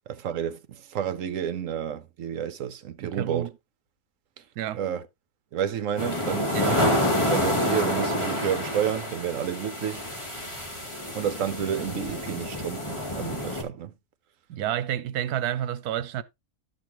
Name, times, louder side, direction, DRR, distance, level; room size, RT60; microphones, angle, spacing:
voice 1, 0.1-3.5 4.7-5.0 5.5-7.0 7.3-10.1 11.1-13.9, right 9 dB, 65° right, 1.1 m, -30 dB
voice 2, 3.0-3.5 4.6-4.8 6.5-6.8 14.5-16.2, right 11 dB, 80° right, 1.2 m, -29 dB
sound 1, 6.0-13.6, left 1 dB, 20° left, 2.1 m, -28 dB
11.5 x 6.7 x 2.9 m
omnidirectional pair, 1.6 m